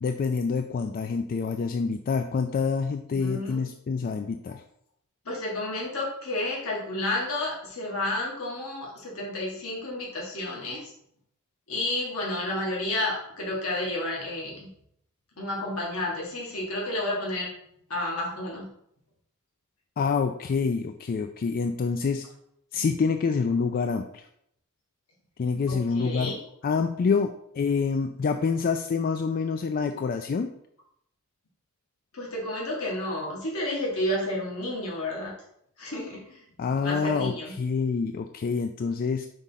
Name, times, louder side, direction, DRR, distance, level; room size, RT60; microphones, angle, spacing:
voice 1, 0.0-4.6 20.0-22.2 22.7-24.2 25.4-26.3 26.6-30.5 36.6-39.3, left 5 dB, 45° left, 7 dB, 0.3 m, -27 dB
voice 2, 3.1-3.7 5.3-10.9 11.7-14.7 15.4-17.5 17.9-18.7 25.7-26.4 32.1-35.3 35.8-36.4 36.8-37.5, left 1 dB, 75° left, -4 dB, 1.9 m, -31 dB
5.3 x 3.6 x 5.7 m, 0.73 s
head